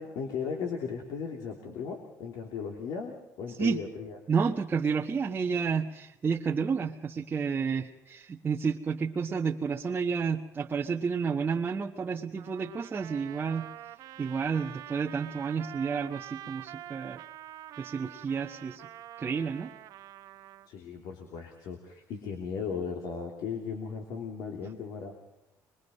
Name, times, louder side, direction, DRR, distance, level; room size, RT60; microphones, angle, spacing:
voice 1, 0.0-4.2 20.7-25.2, left 6 dB, 80° left, 2 dB, 3.0 m, -37 dB
voice 2, 4.3-13.7 14.2-17.2 17.8-18.9 19.2-19.7, right 5 dB, 30° right, 0 dB, 1.2 m, -30 dB
Trumpet, 12.4-20.7, right 13 dB, 70° right, 0.8 m, -46 dB
25.0 x 22.0 x 5.4 m, 0.83 s
cardioid pair, 105°, 7 cm